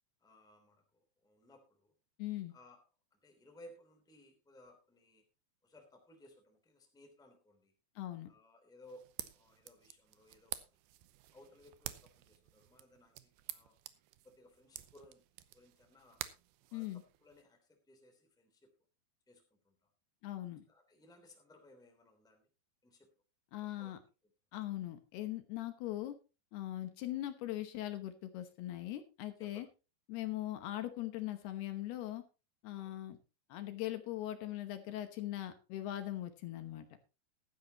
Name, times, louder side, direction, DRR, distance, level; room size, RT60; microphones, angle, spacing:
voice 1, 0.2-1.9 2.5-2.8 3.1-5.2 5.6-7.7 8.2-10.7 11.3-13.8 14.2-15.2 15.5-16.2 16.7-18.7 19.3-19.9 20.7-22.5 22.8-23.1 23.6-24.0 29.4-29.7 32.8-32.9, left 1 dB, ahead, 4 dB, 2.3 m, -61 dB
voice 2, 2.2-2.5 8.0-8.3 16.7-17.0 20.2-20.7 23.5-24.0 24.5-26.2 26.5-29.7 30.1-32.2 32.6-33.2 33.5-36.9, left 14 dB, 75° left, 8 dB, 2.9 m, -40 dB
sound 1, 8.8-17.4, right 15 dB, 80° right, 2.4 m, -49 dB
15.0 x 13.0 x 2.9 m, 0.30 s
omnidirectional pair, 5.0 m